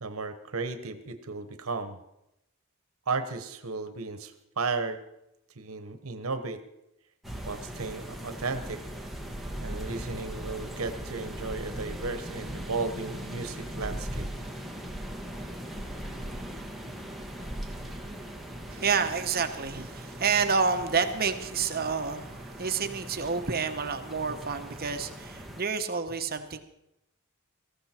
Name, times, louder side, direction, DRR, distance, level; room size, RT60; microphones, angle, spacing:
voice 1, 0.0-2.0 3.1-5.0 5.6-6.6 7.5-8.8 9.6-14.3, right 4 dB, 80° right, 1.1 m, -34 dB
sound 1, 7.2-25.6, equal, ahead, 1.6 m, -39 dB
voice 2, 18.7-26.6, right 5 dB, 45° right, 1.1 m, -29 dB
18.5 x 14.5 x 4.4 m
head